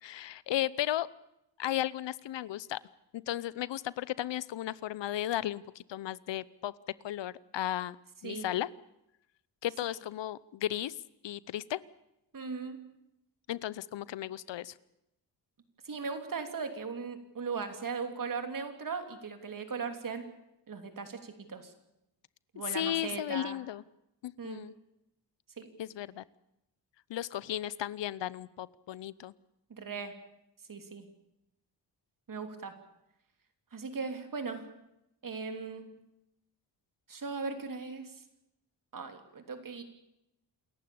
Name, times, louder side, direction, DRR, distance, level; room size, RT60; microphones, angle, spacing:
voice 1, 0.0-1.1 1.6-2.8 3.1-6.7 7.0-8.0 8.2-8.7 9.6-10.9 11.2-11.8 13.5-14.7 22.7-23.8 24.2-24.7 25.8-26.2 27.1-29.3, left 12 dB, 85° left, 20 dB, 0.8 m, -35 dB
voice 2, 12.3-12.9 15.8-20.3 20.7-21.7 22.5-23.6 24.4-24.6 25.6-25.7 29.7-30.1 30.7-31.1 32.3-32.7 33.7-34.7 35.2-35.9 37.1-38.2 38.9-39.8, right 5 dB, 50° right, 7 dB, 3.2 m, -38 dB
28.0 x 15.0 x 8.6 m, 0.85 s
wide cardioid pair, 110°, 42 cm